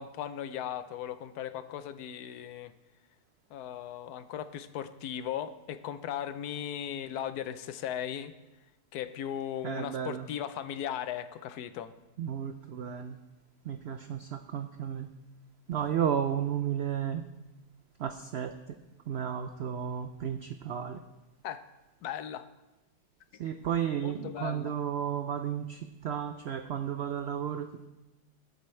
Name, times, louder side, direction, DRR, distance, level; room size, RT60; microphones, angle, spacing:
voice 1, 0.0-2.7 3.5-8.3 8.9-11.9 21.4-21.6 22.0-22.4 24.0-24.7, left 10 dB, 80° left, 12 dB, 1.1 m, -37 dB
voice 2, 9.6-10.3 12.2-13.2 13.6-15.1 15.7-17.2 18.0-18.8 19.1-21.0 23.4-27.9, right 9 dB, 80° right, 8 dB, 0.5 m, -33 dB
15.5 x 8.1 x 3.2 m, 1.0 s
omnidirectional pair, 1.7 m